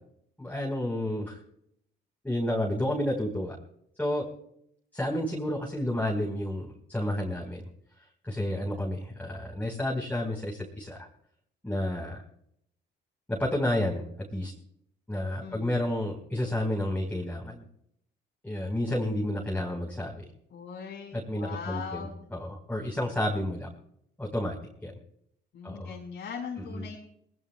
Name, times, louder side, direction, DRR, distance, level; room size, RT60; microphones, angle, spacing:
voice 1, 0.4-1.4 2.2-3.6 4.0-4.3 4.9-7.7 8.2-11.1 11.6-12.2 13.3-14.5 15.1-17.6 18.4-20.3 21.1-23.7 24.2-24.9 25.6-25.9 26.7-26.8, left 1 dB, 10° left, -1 dB, 4.5 m, -31 dB
voice 2, 15.4-15.8 20.5-22.2 25.5-27.0, left 6 dB, 70° left, -2 dB, 4.9 m, -40 dB
23.0 x 20.0 x 2.3 m, 0.71 s
cardioid pair, 90°, 20 cm